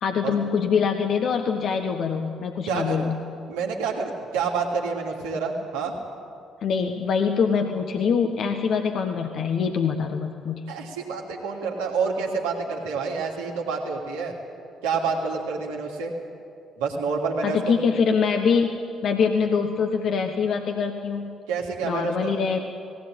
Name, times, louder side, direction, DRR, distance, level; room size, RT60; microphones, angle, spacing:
voice 1, 0.0-3.2 6.6-10.6 17.4-21.4 21.8-22.6, left 6 dB, 55° left, 5 dB, 1.3 m, -24 dB
voice 2, 2.6-3.1 3.5-5.9 10.7-14.3 14.8-16.1 16.8-17.7 21.5-22.4, right 5 dB, 75° right, -1 dB, 2.8 m, -28 dB
18.5 x 17.0 x 9.0 m, 2.5 s
figure-of-eight pair, 45°, 0 cm